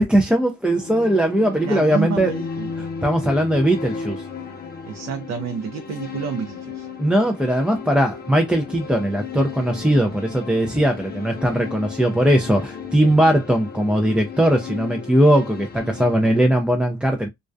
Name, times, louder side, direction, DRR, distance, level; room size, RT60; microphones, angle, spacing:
voice 1, 0.0-2.3 2.8-4.2 7.0-17.3, right 1 dB, 5° right, 0.3 m, -19 dB
sound 1, 0.7-16.5, left 5 dB, 30° left, 0.7 m, -34 dB
voice 2, 1.6-2.9 4.9-6.9, right 7 dB, 60° right, 0.5 m, -29 dB
2.3 x 2.2 x 2.5 m
cardioid pair, 90°, 30 cm